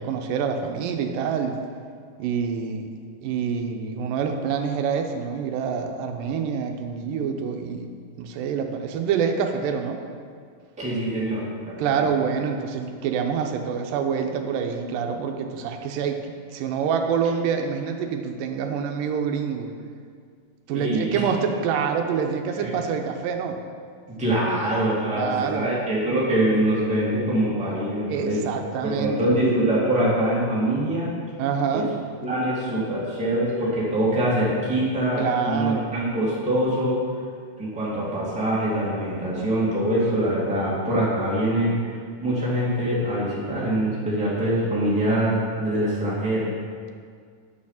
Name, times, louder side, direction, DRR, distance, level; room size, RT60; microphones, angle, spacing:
voice 1, 0.0-1.6 2.2-2.9 3.2-7.9 8.2-10.0 11.8-19.7 20.7-23.6 25.1-25.7 28.1-29.2 31.4-31.9 35.2-35.9, right 6 dB, 85° right, 4 dB, 2.3 m, -26 dB
voice 2, 10.8-12.0 20.7-21.2 22.6-22.7 24.2-28.4 28.8-31.1 31.7-31.9 32.2-37.0 37.6-41.7 42.2-46.5, right 1 dB, 5° right, -8 dB, 1.7 m, -24 dB
9.3 x 6.5 x 5.8 m, 2.1 s
omnidirectional pair, 4.0 m